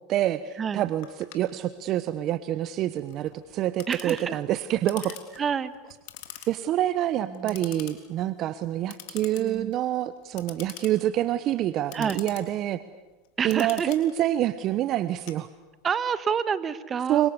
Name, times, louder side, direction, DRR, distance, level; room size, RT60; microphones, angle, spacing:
voice 1, 0.1-5.2 6.5-12.8 13.4-15.5 17.1-17.3, right 13 dB, 50° right, 13 dB, 1.0 m, -27 dB
Clock, 1.0-16.0, left 13 dB, 65° left, 3.5 m, -46 dB
voice 2, 3.9-4.4 5.4-5.7 6.4-6.5 7.2-7.5 9.4-9.7 11.9-12.2 13.4-13.9 15.8-17.3, right 7 dB, 30° right, 13 dB, 1.5 m, -28 dB
29.5 x 25.0 x 6.9 m, 1.2 s
hypercardioid pair, 100°, 0 cm